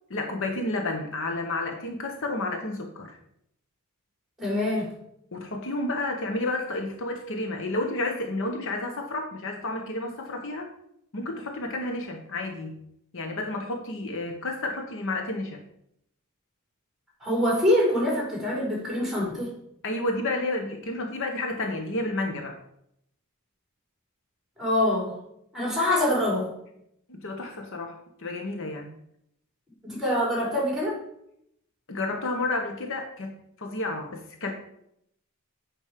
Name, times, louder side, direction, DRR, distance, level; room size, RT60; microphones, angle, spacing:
voice 1, 0.1-3.2 5.3-10.7 11.1-12.8 13.1-15.6 19.8-22.5 27.1-28.9 31.9-33.3 33.6-34.5, left 2 dB, 60° left, 3 dB, 1.0 m, -31 dB
voice 2, 4.4-4.9 17.2-19.5 24.6-25.1 25.5-26.5 29.8-31.0, left 1 dB, ahead, -4 dB, 4.0 m, -25 dB
8.7 x 5.2 x 5.1 m, 0.75 s
head